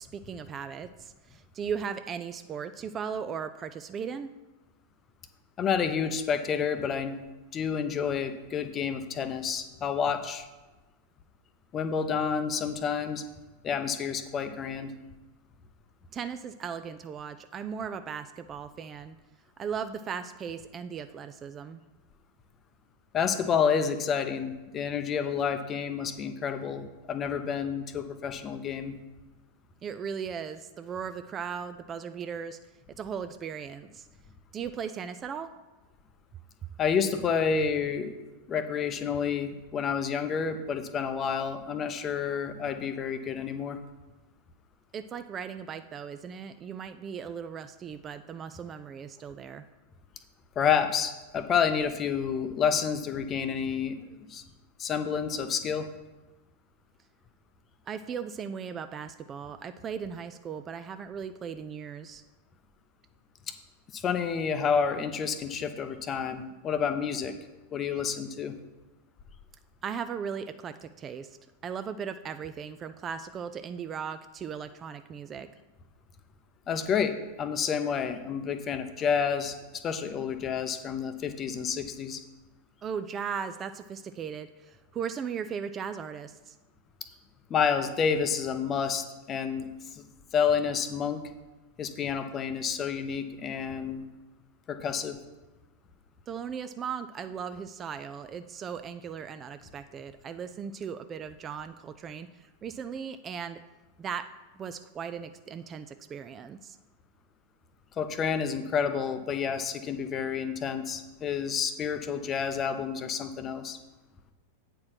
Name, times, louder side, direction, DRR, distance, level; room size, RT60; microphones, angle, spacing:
voice 1, 0.0-4.3 16.1-19.2 19.6-21.8 29.8-32.6 33.0-34.1 34.5-35.5 44.9-49.7 57.9-62.2 69.8-71.4 71.6-75.5 82.8-86.6 96.3-103.6 104.0-106.8, right 7 dB, 25° right, 10 dB, 0.3 m, -37 dB
voice 2, 5.6-7.1 7.5-10.5 11.7-13.2 13.6-14.9 23.1-28.9 36.8-38.2 38.5-43.8 50.6-54.4 54.8-55.9 63.9-67.3 67.7-68.6 76.7-82.2 87.5-90.0 90.3-91.2 91.8-94.1 94.7-95.2 108.0-113.8, left 6 dB, 25° left, 9 dB, 0.7 m, -29 dB
8.5 x 4.5 x 5.8 m, 1.1 s
figure-of-eight pair, 90°, 0 cm